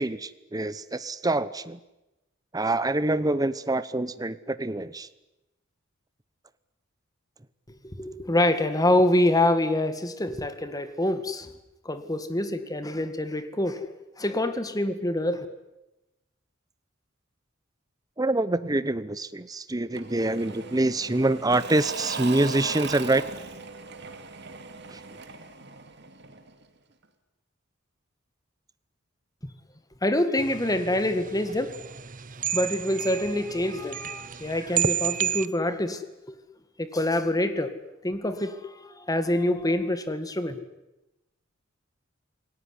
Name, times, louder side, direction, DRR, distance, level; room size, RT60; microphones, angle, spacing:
voice 1, 0.0-1.8 2.5-5.1 18.2-23.2 24.9-25.0, right 2 dB, 20° right, 14 dB, 0.9 m, -26 dB
voice 2, 7.8-11.5 11.9-13.8 14.2-15.5 29.4-29.5 30.0-31.7 32.5-36.0 36.3-36.4 36.8-37.7 38.0-40.6, left 1 dB, 20° left, 10 dB, 2.0 m, -26 dB
Engine / Mechanisms / Drill, 19.9-26.6, right 4 dB, 60° right, 2.7 m, -38 dB
sound 1, 30.4-35.5, right 9 dB, 45° right, 0.9 m, -31 dB
28.0 x 19.0 x 9.9 m, 0.97 s
head